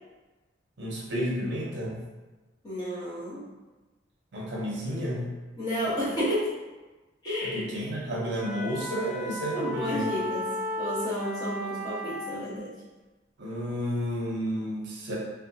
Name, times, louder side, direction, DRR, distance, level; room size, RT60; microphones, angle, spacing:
voice 1, 0.8-2.0 4.3-5.3 7.4-10.1 13.4-15.2, equal, 60° right, -4 dB, 0.6 m, -31 dB
voice 2, 2.6-3.4 5.6-6.5 7.2-7.6 9.5-10.5 10.8-12.8, equal, 20° left, -11 dB, 1.0 m, -31 dB
sound 1, 8.4-12.4, left 1 dB, ahead, 0.5 m, -34 dB
2.7 x 2.3 x 2.6 m, 1.2 s
head